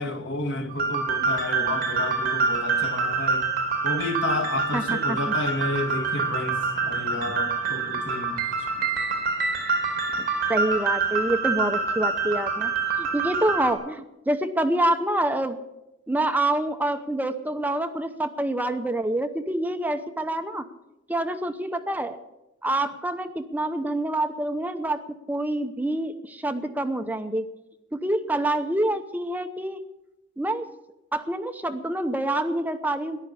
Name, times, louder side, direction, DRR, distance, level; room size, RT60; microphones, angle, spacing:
voice 1, 0.0-3.5 3.8-8.7, left 2 dB, 70° left, 1.8 m, -31 dB
sound 1, 0.7-13.7, right 4 dB, 50° right, 3.2 m, -26 dB
voice 2, 4.7-5.3 8.7-8.9 10.5-12.7 13.0-15.6 16.1-20.7 21.1-22.2 22.6-27.5 27.9-29.8 30.4-30.7 31.1-33.2, right 1 dB, 10° right, 0.8 m, -27 dB
14.0 x 11.0 x 8.5 m
head